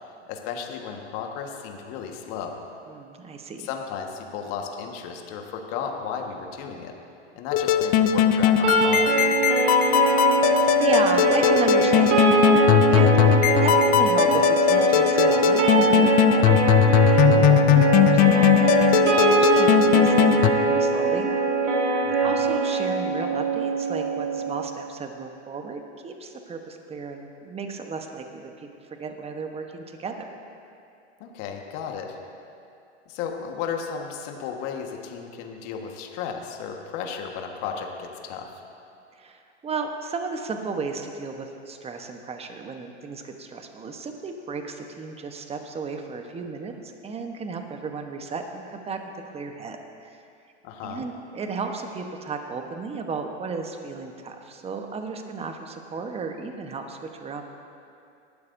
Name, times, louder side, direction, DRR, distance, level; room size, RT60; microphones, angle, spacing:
voice 1, 0.3-2.6 3.6-6.9 7.3-9.2 22.0-22.4 31.2-32.2 33.1-38.5 50.6-51.0, left 6 dB, 45° left, 2 dB, 1.5 m, -34 dB
voice 2, 2.9-3.7 10.1-21.3 21.7-21.9 22.2-30.3 39.1-49.0 49.3-50.2 50.8-57.4, right 4 dB, 15° right, 5 dB, 1.0 m, -34 dB
sound 1, 7.5-20.5, left 9 dB, 25° left, 0.4 m, -19 dB
sound 2, 8.6-24.7, right 3 dB, 80° right, 2.2 m, -22 dB
19.0 x 12.0 x 2.7 m, 2.5 s
hypercardioid pair, 115°, 36 cm